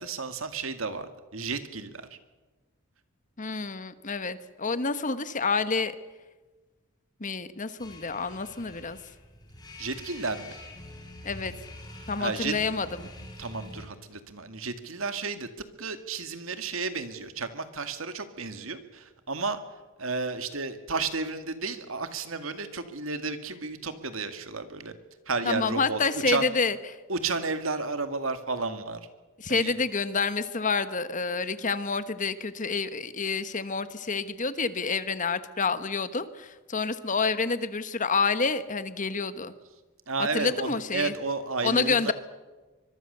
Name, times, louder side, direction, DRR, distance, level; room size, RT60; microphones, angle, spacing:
voice 1, 0.0-2.2 9.8-10.5 12.2-12.6 13.4-15.5 15.8-19.6 20.0-25.0 25.3-26.5 27.1-29.1 29.5-29.8 40.1-42.1, right 4 dB, 75° right, 9 dB, 2.1 m, -32 dB
voice 2, 3.4-5.9 7.2-9.0 11.2-11.5 12.1-13.1 25.5-26.8 29.4-39.5 40.3-41.1 41.6-42.1, left 4 dB, 40° left, 12 dB, 1.3 m, -28 dB
sound 1, 7.8-13.9, left 1 dB, 20° left, 4.7 m, -45 dB
24.5 x 22.0 x 6.9 m, 1.2 s
head